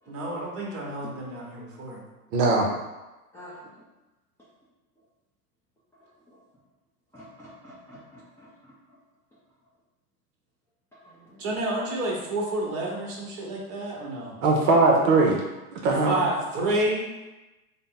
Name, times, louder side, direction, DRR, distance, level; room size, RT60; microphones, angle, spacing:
voice 1, 0.1-2.0 11.4-14.4 15.8-17.1, right 1 dB, 30° right, -2 dB, 1.1 m, -29 dB
voice 2, 1.0-1.4 3.3-3.8 5.9-6.4 7.1-8.7 10.9-11.6, equal, 5° left, -10 dB, 0.4 m, -49 dB
voice 3, 2.3-2.7 14.4-15.4 15.7-16.2, right 3 dB, 50° right, 0 dB, 0.8 m, -20 dB
3.8 x 2.1 x 3.8 m, 1.1 s
hypercardioid pair, 105°, 46 cm